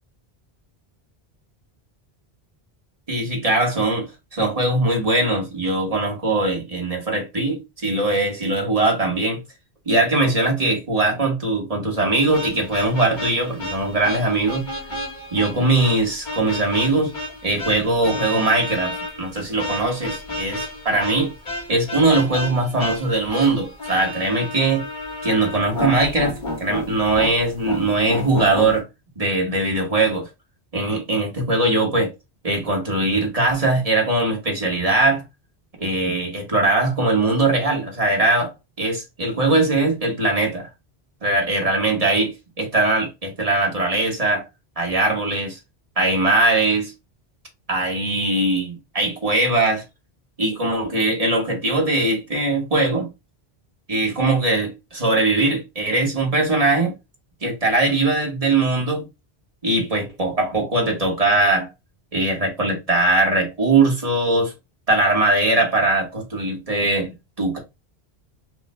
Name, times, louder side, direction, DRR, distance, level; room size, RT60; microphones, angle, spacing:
voice 1, 3.1-9.4 9.8-14.7 15.3-17.2 17.4-21.3 21.7-24.8 25.2-28.9 29.2-30.3 30.7-32.1 32.4-35.2 35.8-38.5 38.8-40.7 41.2-44.4 44.8-45.6 46.0-46.9 47.7-49.8 50.4-53.1 53.9-56.9 57.4-59.0 59.6-61.7 62.1-64.5 64.9-67.1 67.4-67.6, right 2 dB, 35° right, 1.5 m, -21 dB
sound 1, 12.3-28.8, left 2 dB, 50° left, 1.7 m, -32 dB
5.1 x 2.5 x 3.2 m
omnidirectional pair, 1.1 m